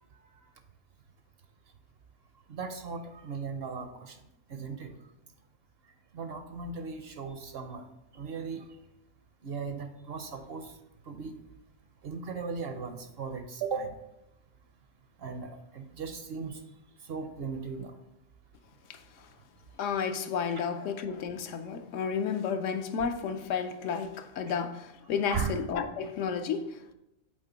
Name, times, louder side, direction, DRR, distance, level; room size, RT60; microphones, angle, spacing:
voice 1, 2.5-4.2 4.5-4.9 6.1-7.9 8.1-8.7 9.4-10.7 11.1-11.3 12.0-13.9 15.2-16.6 17.1-17.9 20.5-20.6 25.3-25.5, right 5 dB, 60° right, 0.8 m, -37 dB
voice 2, 18.9-19.3 19.8-26.9, left 6 dB, 75° left, 0.9 m, -32 dB
7.4 x 4.3 x 3.9 m
omnidirectional pair, 1.3 m